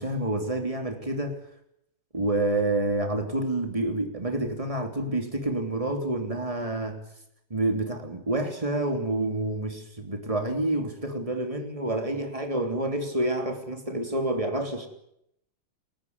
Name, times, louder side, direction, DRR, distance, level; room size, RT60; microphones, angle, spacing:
voice 1, 0.0-1.4 2.1-7.0 7.5-14.9, right 2 dB, 15° right, 5 dB, 3.4 m, -28 dB
29.5 x 14.5 x 9.7 m, 0.76 s
omnidirectional pair, 2.2 m